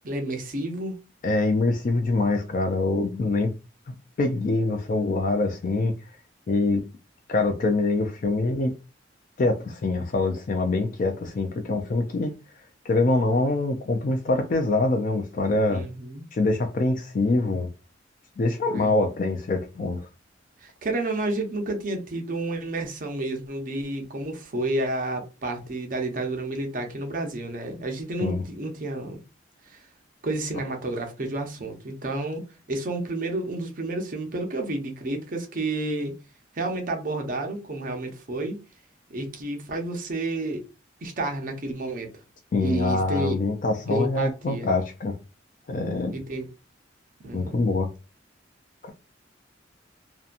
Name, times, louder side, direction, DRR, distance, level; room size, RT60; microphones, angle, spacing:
voice 1, 0.0-1.0 15.7-16.2 18.7-19.0 20.6-29.2 29.7-29.8 30.2-36.2 36.5-38.6 39.1-40.6 41.0-42.1 42.6-43.4 43.9-44.7 46.1-46.5 47.2-47.6, right 2 dB, 45° right, 0.6 m, -30 dB
voice 2, 1.2-3.5 4.2-5.9 6.5-6.8 7.3-8.7 9.4-12.4 12.9-15.8 16.3-17.7 18.4-20.1 28.2-28.4 42.5-45.1 45.7-46.1 47.3-47.9 48.8-48.9, left 2 dB, 45° left, 0.3 m, -24 dB
2.7 x 2.2 x 2.4 m
head